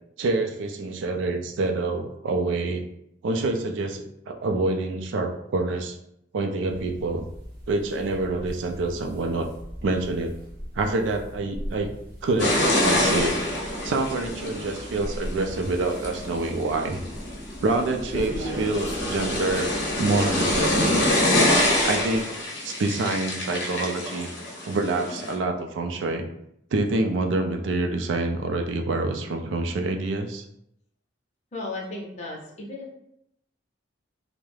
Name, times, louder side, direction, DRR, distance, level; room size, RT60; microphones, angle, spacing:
voice 1, 0.2-2.8 3.2-6.0 6.3-7.2 7.7-9.5 9.8-10.3 10.8-11.9 12.2-13.5 13.8-17.0 17.6-21.1 21.8-22.3 22.6-24.3 24.7-26.3 26.7-30.4, right 2 dB, 80° right, 4 dB, 0.4 m, -27 dB
sound 1, 6.7-22.2, equal, 55° right, 0.7 m, -39 dB
sound 2, 12.4-25.3, left 1 dB, 75° left, 0.7 m, -26 dB
voice 2, 31.5-32.9, left 2 dB, 35° left, -3 dB, 0.5 m, -35 dB
2.3 x 2.0 x 3.1 m, 0.76 s
head